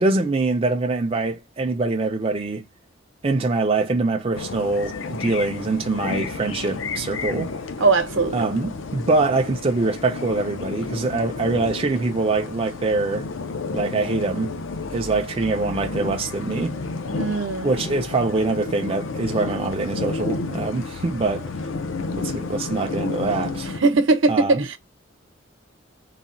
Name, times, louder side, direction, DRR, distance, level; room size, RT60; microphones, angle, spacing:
voice 1, 0.0-2.6 3.2-7.5 8.3-13.3 13.7-14.5 14.9-16.7 17.6-21.5 22.1-23.7 24.3-24.6, right 3 dB, 30° right, 0.4 m, -24 dB
sound 1, 4.3-23.8, left 3 dB, 80° left, 0.6 m, -31 dB
voice 2, 7.8-8.5 17.1-17.7 23.8-24.8, right 3 dB, 70° right, 0.8 m, -20 dB
4.0 x 2.2 x 3.7 m
head